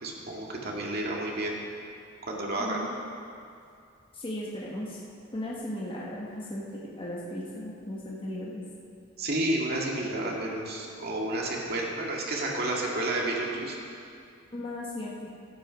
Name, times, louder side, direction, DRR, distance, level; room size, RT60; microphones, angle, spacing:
voice 1, 0.0-1.5 2.3-2.9 9.2-13.8, right 1 dB, 50° right, -2 dB, 2.1 m, -31 dB
voice 2, 2.6-2.9 4.1-5.0 5.3-8.6 14.5-15.3, left 1 dB, 25° left, -5 dB, 1.4 m, -36 dB
14.0 x 9.0 x 5.3 m, 2.4 s
head